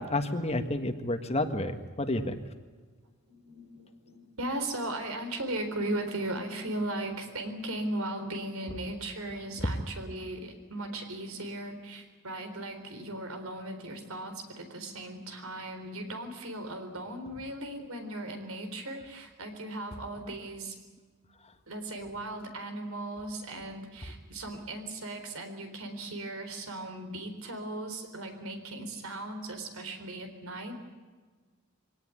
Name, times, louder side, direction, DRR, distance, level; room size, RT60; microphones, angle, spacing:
voice 1, 0.0-1.7 2.0-2.3, left 1 dB, 30° left, 7 dB, 1.6 m, -30 dB
voice 2, 3.3-20.8 21.7-30.7, right 1 dB, 80° right, 7 dB, 4.1 m, -37 dB
24.0 x 18.0 x 9.8 m, 1.4 s
head